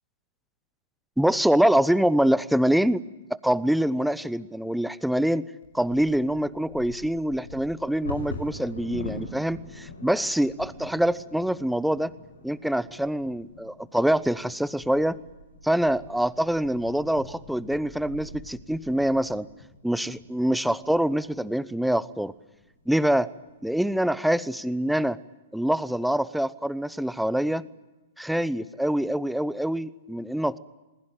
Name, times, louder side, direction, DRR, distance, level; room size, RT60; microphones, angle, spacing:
voice 1, 1.2-3.0 3.3-5.4 5.7-12.1 12.4-15.2 15.6-19.5 19.8-22.3 22.9-23.3 23.6-25.2 25.5-27.6 28.2-30.6, right 1 dB, ahead, 16 dB, 0.9 m, -25 dB
Bird vocalization bird call bird song / Wind / Thunder, 5.6-21.5 22.1-22.2 22.6-23.0 23.4-24.0, left 2 dB, 85° left, 5.8 m, -43 dB
27.5 x 20.5 x 8.9 m, 1.1 s
hypercardioid pair, 120°, 0 cm